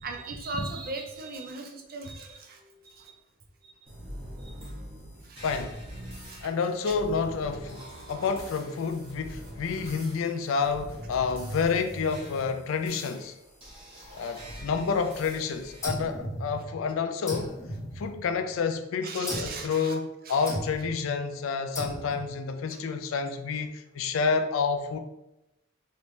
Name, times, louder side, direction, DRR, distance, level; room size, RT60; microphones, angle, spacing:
voice 1, 0.0-2.3 19.0-19.9 20.3-20.4, right 3 dB, 50° right, 3 dB, 0.5 m, -36 dB
sound 1, 3.9-15.9, right 1 dB, 30° right, 1.0 m, -43 dB
voice 2, 5.4-5.8 6.4-13.4 14.2-17.5 18.0-25.0, left 5 dB, 80° left, 8 dB, 0.4 m, -29 dB
sound 2, 15.8-16.9 17.3-18.6 19.3-19.7 20.5-21.0 21.8-22.4, equal, 15° left, 0.5 m, -36 dB
3.2 x 2.6 x 3.1 m, 0.90 s
head